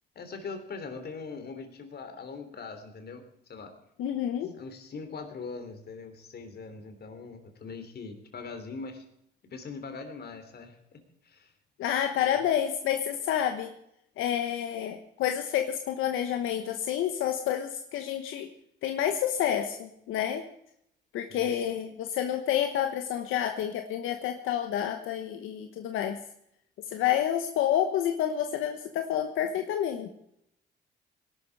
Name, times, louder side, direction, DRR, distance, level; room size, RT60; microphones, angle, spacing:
voice 1, 0.2-3.7 4.5-9.0 9.5-11.5 12.2-12.4 21.3-21.7, left 4 dB, 55° left, 6 dB, 3.4 m, -42 dB
voice 2, 4.0-4.5 11.8-13.7 14.2-18.5 18.8-20.4 21.1-26.2 26.9-30.1, left 10 dB, 90° left, 6 dB, 1.1 m, -29 dB
19.0 x 12.0 x 4.8 m, 0.74 s
cardioid pair, 90°, 20 cm